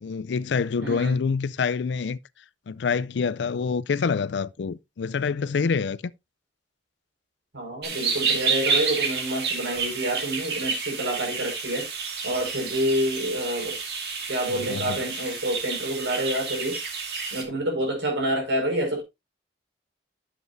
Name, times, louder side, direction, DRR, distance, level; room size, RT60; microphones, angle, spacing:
voice 1, 0.0-2.2 2.7-6.0 14.5-15.0, left 5 dB, 75° left, 0.4 m, -26 dB
voice 2, 0.8-1.1 7.5-11.9 12.2-13.8 14.3-16.8 17.3-19.0, right 1 dB, 80° right, 5.1 m, -28 dB
sound 1, 7.8-17.4, right 5 dB, 60° right, 2.2 m, -29 dB
11.0 x 7.5 x 2.6 m
head